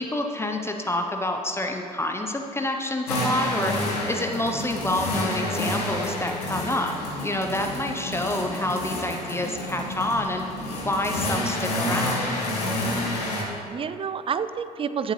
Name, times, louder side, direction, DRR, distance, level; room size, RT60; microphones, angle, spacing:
voice 1, 0.0-3.7 4.1-6.9 7.2-10.4 10.8-12.2, left 1 dB, 15° left, 3 dB, 0.8 m, -28 dB
sound 1, 3.1-13.4, left 1 dB, 75° left, 1.6 m, -29 dB
voice 2, 13.2-15.1, right 7 dB, 30° right, 12 dB, 0.5 m, -30 dB
15.0 x 7.5 x 3.2 m, 2.5 s
figure-of-eight pair, 50°, 20 cm